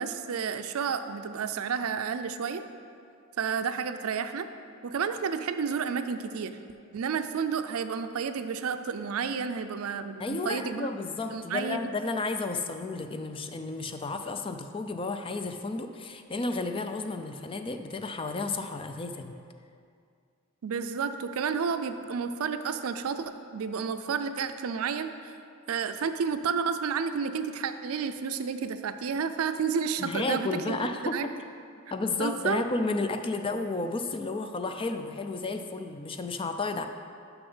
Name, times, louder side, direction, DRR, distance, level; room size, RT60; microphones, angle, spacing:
voice 1, 0.0-2.6 3.4-4.5 4.8-6.6 6.9-10.9 11.3-11.8 20.6-25.3 25.7-30.8 31.1-31.3 32.2-32.6, right 6 dB, 80° right, 10 dB, 0.4 m, -31 dB
voice 2, 10.2-19.4 30.0-31.3 31.9-36.9, left 3 dB, 25° left, 7 dB, 0.4 m, -32 dB
6.7 x 6.0 x 5.5 m, 2.3 s
head